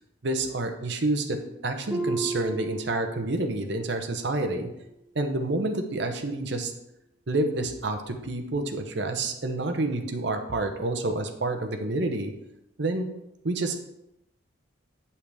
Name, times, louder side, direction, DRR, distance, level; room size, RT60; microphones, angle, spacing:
voice 1, 0.2-1.4 1.6-4.7 5.1-6.7 7.3-12.3 12.8-13.1 13.4-13.8, right 2 dB, 60° right, 5 dB, 0.8 m, -28 dB
Harp, 1.9-3.7 4.0-4.4 5.0-5.1, right 2 dB, 10° right, 0.6 m, -34 dB
8.0 x 5.6 x 3.5 m, 0.87 s
head